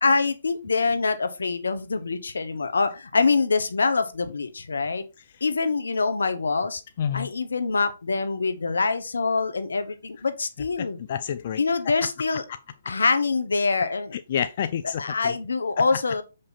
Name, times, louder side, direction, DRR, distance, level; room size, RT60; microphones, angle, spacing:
voice 1, 0.0-5.0 5.4-6.8 7.1-11.0 11.6-12.4 12.8-14.2 15.0-16.2, left 4 dB, 85° left, 1.2 m, -25 dB
voice 2, 7.0-7.3 10.8-11.6 14.1-15.3, left 9 dB, 50° left, 0.5 m, -29 dB
7.1 x 5.2 x 4.2 m
hypercardioid pair, 145°, 0 cm